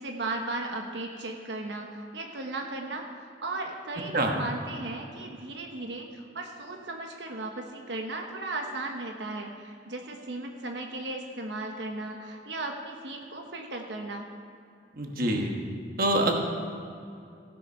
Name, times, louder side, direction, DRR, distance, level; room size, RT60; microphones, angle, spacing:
voice 1, 0.0-3.0 3.4-14.3, right 2 dB, 85° right, 2 dB, 1.1 m, -36 dB
voice 2, 15.0-15.6 16.0-16.3, right 1 dB, 50° right, 2 dB, 1.3 m, -25 dB
16.0 x 7.6 x 5.5 m, 2.4 s
head